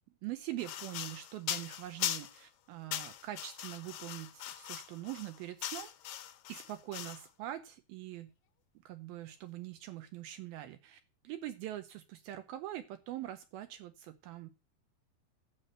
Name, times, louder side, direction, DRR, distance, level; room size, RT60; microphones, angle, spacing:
voice 1, 0.2-5.9 6.5-8.3 8.9-11.0 11.2-14.5, right 14 dB, 80° right, 9 dB, 2.6 m, -43 dB
sound 1, 0.6-2.5 2.9-7.3, left 11 dB, 75° left, 2.4 m, -40 dB
11.5 x 6.0 x 7.8 m, 0.31 s
omnidirectional pair, 4.4 m